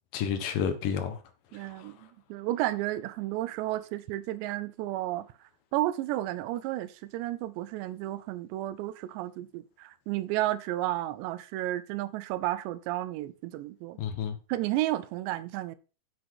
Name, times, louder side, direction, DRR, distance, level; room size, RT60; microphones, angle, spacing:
voice 1, 0.1-1.2 1.5-2.1 14.0-14.4, left 7 dB, 65° left, 2.6 m, -31 dB
voice 2, 1.5-5.3 5.7-14.0 14.5-15.8, right 15 dB, 85° right, 2.9 m, -32 dB
8.2 x 8.1 x 4.7 m
omnidirectional pair, 4.9 m